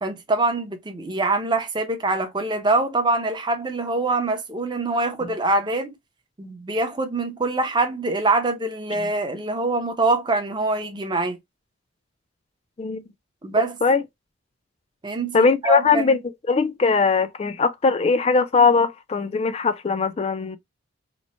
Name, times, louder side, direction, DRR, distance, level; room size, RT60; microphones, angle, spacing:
voice 1, 0.0-5.9 6.4-11.4 13.4-13.8 15.0-16.2, right 2 dB, 20° right, 0.5 m, -24 dB
voice 2, 15.3-16.2 16.5-20.6, left 4 dB, 30° left, 0.3 m, -20 dB
3.0 x 2.1 x 4.0 m
head